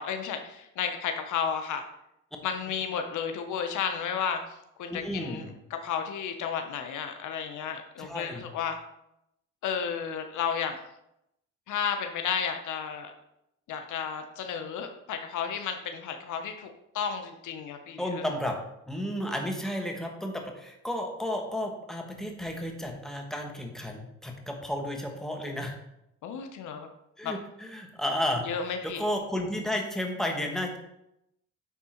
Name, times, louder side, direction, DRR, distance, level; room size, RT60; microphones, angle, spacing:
voice 1, 0.0-1.8 2.4-4.4 4.8-8.8 9.6-10.8 11.7-13.1 13.7-16.7 16.9-18.3 26.2-26.9 27.2-27.3 28.4-29.0, left 7 dB, 80° left, 6 dB, 0.9 m, -32 dB
voice 2, 4.9-5.5 8.0-8.5 18.0-18.6 18.9-25.7 27.2-28.4 28.8-30.8, left 1 dB, ahead, 2 dB, 1.4 m, -32 dB
9.4 x 3.7 x 4.4 m, 0.82 s
cardioid pair, 90°, 30 cm